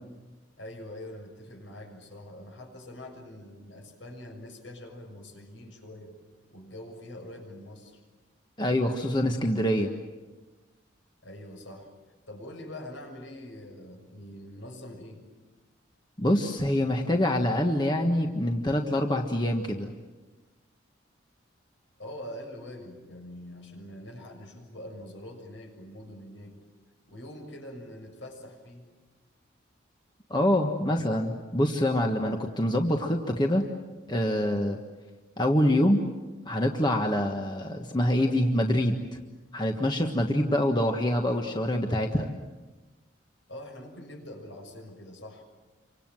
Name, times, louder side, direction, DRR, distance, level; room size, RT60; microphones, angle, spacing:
voice 1, 0.6-6.2 6.5-8.0 11.2-11.9 12.3-15.2 22.0-26.5 27.1-28.9 43.5-45.5, left 1 dB, 70° left, 3 dB, 6.8 m, -44 dB
voice 2, 8.6-9.9 16.2-19.9 30.3-33.6 34.1-34.8 35.4-36.0 36.4-39.0 39.5-42.3, left 1 dB, 20° left, 3 dB, 1.5 m, -25 dB
29.0 x 25.0 x 7.7 m, 1.2 s
head